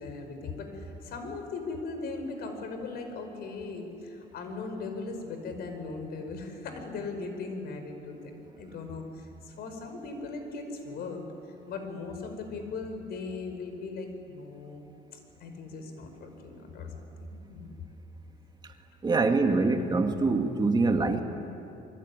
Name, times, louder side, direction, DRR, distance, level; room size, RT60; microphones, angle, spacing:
voice 1, 0.0-8.2 8.6-11.2 11.7-14.9 15.1-17.0 17.3-17.7, left 3 dB, 70° left, 6 dB, 5.4 m, -38 dB
voice 2, 19.0-21.2, right 3 dB, 25° right, 5 dB, 2.1 m, -24 dB
26.0 x 23.0 x 9.9 m, 2.8 s
cardioid pair, 110°, 17 cm